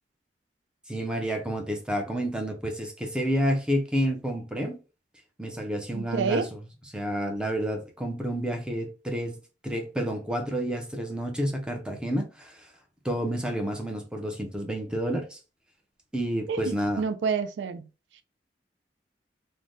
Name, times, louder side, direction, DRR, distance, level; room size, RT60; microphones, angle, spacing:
voice 1, 0.9-4.8 5.4-6.6 6.9-9.3 9.6-12.7 13.0-15.4 16.1-17.0, equal, 5° right, 0.5 m, -29 dB
voice 2, 5.9-6.5 16.5-17.8, right 5 dB, 80° right, 0.3 m, -28 dB
3.3 x 2.1 x 2.5 m
head